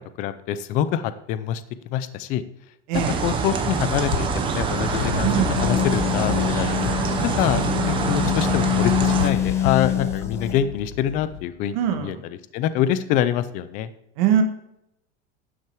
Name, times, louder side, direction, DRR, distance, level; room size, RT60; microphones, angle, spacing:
voice 1, 0.2-1.6 1.9-2.4 3.2-5.3 5.6-6.9 7.2-12.2 12.5-13.9, left 10 dB, 25° left, 13 dB, 0.4 m, -25 dB
sound 1, 2.9-9.3, right 6 dB, 15° right, 0.7 m, -25 dB
voice 2, 2.9-3.2 5.2-5.6 7.6-7.8 11.7-12.2 14.2-14.4, right 9 dB, 50° right, 6 dB, 1.4 m, -23 dB
sound 2, 4.1-11.4, left 9 dB, 90° left, 1.2 m, -25 dB
sound 3, 5.5-10.5, left 2 dB, 10° left, 1.1 m, -39 dB
11.5 x 6.4 x 4.5 m, 0.80 s
supercardioid pair, 175°, 29 cm